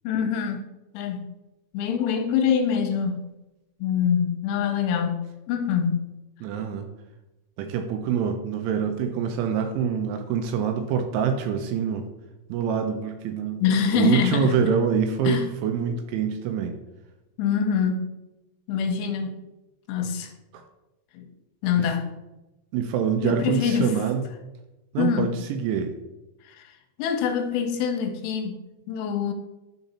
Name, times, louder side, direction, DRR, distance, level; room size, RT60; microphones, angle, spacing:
voice 1, 0.0-0.7 0.9-1.3 1.7-3.2 3.8-6.1 13.6-14.6 15.2-15.5 17.4-18.1 18.7-19.4 19.9-20.3 21.1-21.3 21.6-22.2 23.2-23.9 25.0-25.3 26.5-26.7 27.0-28.6 28.9-29.3, left 7 dB, 80° left, 4 dB, 3.0 m, -25 dB
voice 2, 6.4-6.9 7.6-12.1 12.5-13.6 13.9-16.8 20.5-20.6 21.8-21.9 22.7-24.2 24.9-25.9, right 7 dB, 85° right, 6 dB, 2.8 m, -25 dB
11.5 x 4.0 x 4.2 m, 0.98 s
omnidirectional pair, 5.9 m